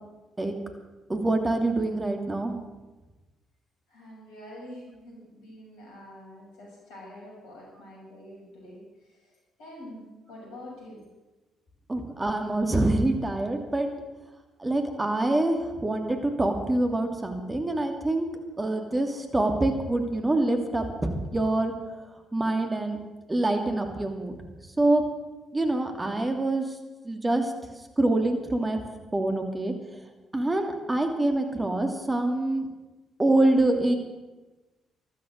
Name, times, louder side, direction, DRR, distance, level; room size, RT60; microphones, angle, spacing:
voice 1, 1.1-2.5 11.9-13.9 14.6-18.3 18.6-21.7 22.3-23.0 23.3-24.3 24.8-25.0 25.5-26.7 27.0-27.5 28.0-28.8 29.1-29.7 30.3-32.7 33.2-34.0, right 2 dB, 20° right, 4 dB, 2.7 m, -25 dB
voice 2, 3.9-8.8 9.6-11.0, left 1 dB, 70° left, -3 dB, 6.8 m, -45 dB
14.5 x 12.5 x 6.6 m, 1.1 s
hypercardioid pair, 45°, 0 cm